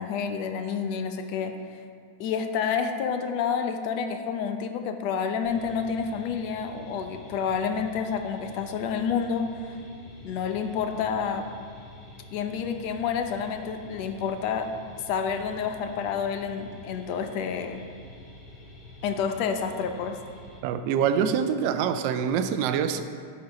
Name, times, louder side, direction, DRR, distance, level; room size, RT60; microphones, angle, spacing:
voice 1, 0.0-1.5 2.2-9.8 10.2-11.5 12.3-14.7 15.1-17.8 19.0-20.2, left 6 dB, 55° left, 6 dB, 0.6 m, -29 dB
sound 1, 5.4-20.6, left 1 dB, 20° left, 1.7 m, -47 dB
voice 2, 20.6-23.0, right 7 dB, 55° right, 9 dB, 0.4 m, -25 dB
11.5 x 4.0 x 3.1 m, 2.1 s
hypercardioid pair, 125°, 0 cm